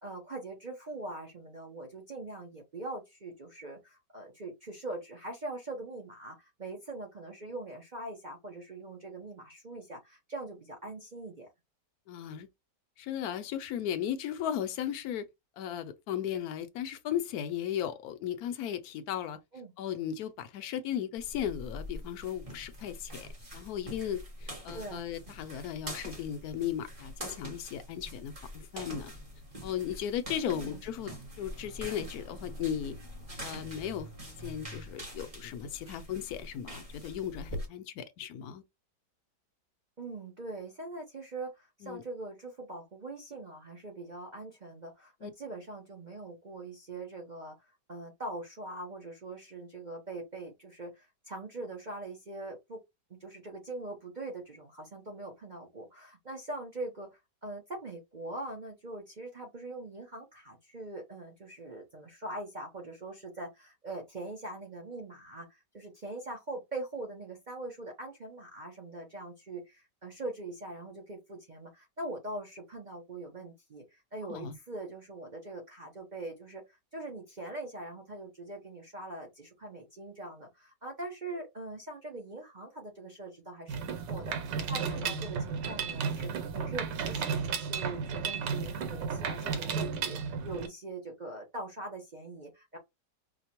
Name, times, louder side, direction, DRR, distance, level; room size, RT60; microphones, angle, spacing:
voice 1, 0.0-11.5 19.5-19.7 24.7-25.0 30.4-30.8 40.0-47.6 47.9-52.8 53.1-92.8, right 2 dB, 45° right, 0.6 m, -42 dB
voice 2, 12.1-12.5 13.0-15.3 15.6-19.4 19.8-29.1 29.6-31.1 31.4-33.0 33.4-34.1 34.4-38.6 41.8-42.0 45.2-45.3 74.3-74.5 84.9-85.3, left 10 dB, 70° left, 1.0 m, -36 dB
sound 1, 21.2-37.7, equal, 25° right, 1.0 m, -44 dB
Mechanisms, 83.7-90.7, right 6 dB, 90° right, 1.5 m, -33 dB
5.0 x 2.1 x 2.9 m
omnidirectional pair, 1.8 m